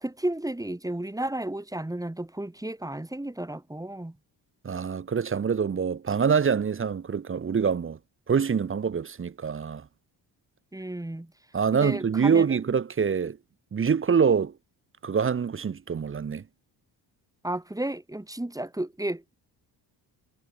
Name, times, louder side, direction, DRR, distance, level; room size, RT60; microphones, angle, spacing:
voice 1, 0.0-4.2 10.7-11.3 11.7-12.4 17.4-19.3, right 1 dB, 10° right, 2.3 m, -33 dB
voice 2, 4.6-8.0 8.3-9.9 11.5-13.4 13.7-14.5 15.0-16.4, right 6 dB, 30° right, 0.8 m, -25 dB
cardioid pair, 90°, 45 cm